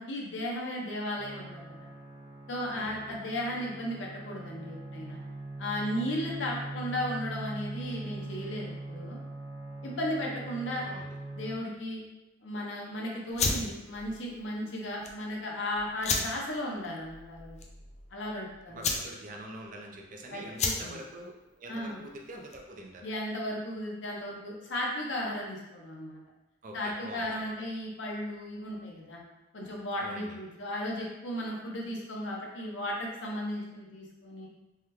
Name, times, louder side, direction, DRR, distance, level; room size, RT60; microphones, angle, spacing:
voice 1, 0.0-1.8 2.5-5.2 5.6-9.2 9.8-10.8 11.3-12.0 12.4-17.6 18.1-18.9 20.3-21.0 21.7-22.0 23.0-26.2 26.7-29.2 29.5-34.5, left 1 dB, 80° left, -2 dB, 0.7 m, -35 dB
sound 1, 1.2-11.6, right 2 dB, 90° right, 1.2 m, -41 dB
voice 2, 2.7-3.2 10.8-11.2 18.7-23.1 26.6-27.4 30.0-30.4, right 1 dB, 45° right, 1 dB, 0.5 m, -45 dB
sound 2, 13.3-22.8, left 4 dB, 35° left, 0.3 m, -35 dB
3.5 x 2.2 x 2.9 m, 1.0 s
head